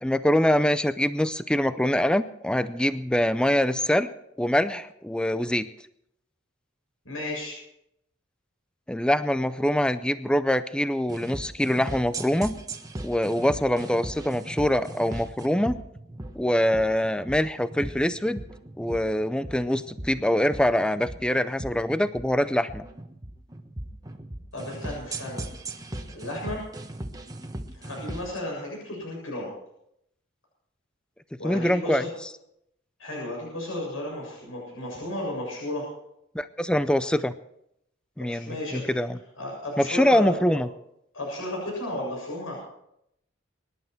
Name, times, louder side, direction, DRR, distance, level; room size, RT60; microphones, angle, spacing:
voice 1, 0.0-4.1 4.4-5.7 8.9-12.5 13.0-15.8 16.4-18.4 18.8-22.8 31.4-32.0 36.3-37.3 38.2-39.2 39.8-40.7, left 1 dB, 5° left, 12 dB, 0.5 m, -24 dB
voice 2, 7.1-7.6 24.5-25.5 26.1-26.6 27.7-29.5 31.4-32.1 33.0-35.8 38.2-38.9 39.4-40.6 41.1-42.6, left 1 dB, 90° left, -3 dB, 7.2 m, -33 dB
sound 1, 11.1-28.4, right 1 dB, 20° right, 1.2 m, -38 dB
24.5 x 11.0 x 4.6 m, 0.77 s
head